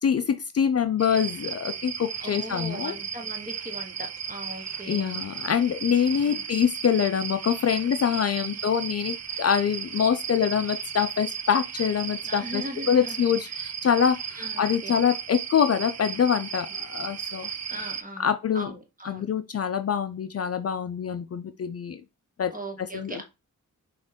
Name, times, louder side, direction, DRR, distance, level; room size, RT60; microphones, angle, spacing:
voice 1, 0.0-3.0 4.9-17.5 18.2-18.7 19.0-22.0 22.4-22.5 22.8-23.2, left 7 dB, 45° left, 0.4 m, -25 dB
sound 1, 1.0-18.0, right 7 dB, 50° right, 0.6 m, -35 dB
voice 2, 2.2-5.2 6.2-6.4 8.4-8.6 12.2-13.2 14.4-15.0 17.7-18.3 18.5-19.2 22.5-23.2, right 1 dB, 25° right, 1.4 m, -39 dB
5.2 x 2.5 x 3.5 m
cardioid pair, 65°, 34 cm